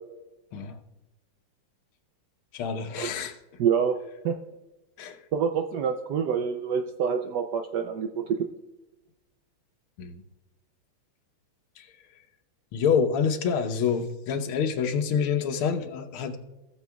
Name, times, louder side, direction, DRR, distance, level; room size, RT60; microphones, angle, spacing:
voice 1, 2.5-3.4 5.0-5.2 10.0-10.2 11.8-11.9 12.7-16.4, left 6 dB, 75° left, 6 dB, 1.7 m, -27 dB
voice 2, 3.6-4.0 4.2-4.4 5.3-8.4, right 7 dB, 80° right, 6 dB, 0.9 m, -26 dB
18.0 x 7.1 x 2.3 m, 1.1 s
omnidirectional pair, 2.4 m